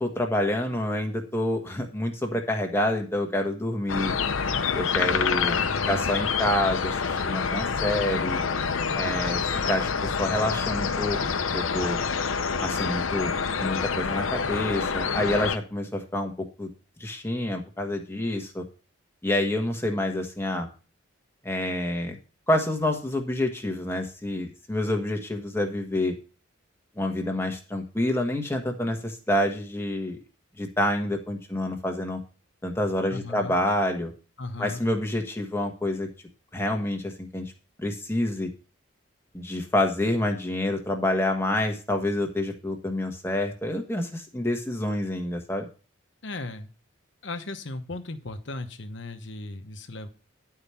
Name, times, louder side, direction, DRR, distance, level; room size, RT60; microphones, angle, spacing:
voice 1, 0.0-4.1 4.7-5.6 5.9-8.4 8.9-11.2 11.5-12.0 12.6-13.3 13.6-16.7 17.0-18.7 19.2-20.7 21.4-22.2 22.5-26.2 26.9-30.2 30.6-32.2 32.6-34.1 34.6-36.1 36.5-37.5 37.8-38.5 39.3-45.6, left 1 dB, 10° left, 3 dB, 1.3 m, -27 dB
sound 1, 3.9-15.6, left 5 dB, 85° left, 0.8 m, -27 dB
voice 2, 5.1-6.0 33.1-33.6 34.4-34.8 46.2-46.7 47.2-50.1, left 2 dB, 60° left, 8 dB, 1.0 m, -37 dB
11.0 x 4.9 x 5.6 m, 0.35 s
head